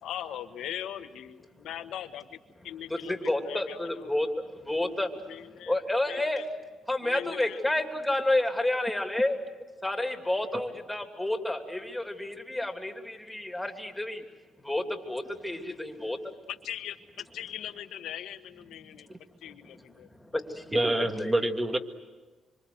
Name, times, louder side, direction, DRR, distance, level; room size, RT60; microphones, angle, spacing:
voice 1, 0.0-4.1 5.3-5.8 6.1-6.5 7.0-7.6 16.5-20.1, left 11 dB, 80° left, 8 dB, 1.5 m, -40 dB
voice 2, 2.9-4.3 4.7-5.1 5.7-6.4 6.9-9.4 9.8-14.2 14.7-16.2 20.5-21.5, left 1 dB, 5° left, 4 dB, 3.0 m, -30 dB
voice 3, 20.7-21.8, right 1 dB, 20° right, 6 dB, 2.0 m, -26 dB
26.0 x 26.0 x 8.0 m, 1.3 s
cardioid pair, 90°, 0 cm